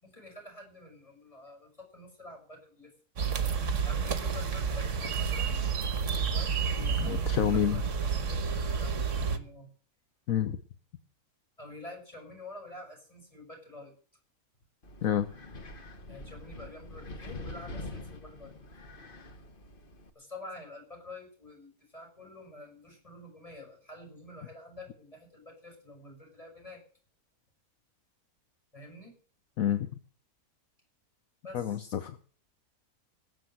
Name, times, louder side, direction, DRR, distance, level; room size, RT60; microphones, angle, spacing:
voice 1, 0.0-2.9 3.8-5.6 6.2-9.7 11.6-13.9 16.1-18.5 20.1-26.8 28.7-29.2 31.4-31.8, left 2 dB, 25° left, 2 dB, 6.7 m, -48 dB
sound 1, 3.2-9.4, right 6 dB, 55° right, 1.5 m, -30 dB
voice 2, 7.0-7.8 10.3-10.6 15.0-15.3 29.6-29.9 31.5-32.2, left 10 dB, 70° left, 10 dB, 1.3 m, -28 dB
Wind, 14.8-20.1, left 2 dB, 40° left, 1.5 m, -44 dB
19.5 x 7.4 x 7.8 m, 0.43 s
omnidirectional pair, 1.5 m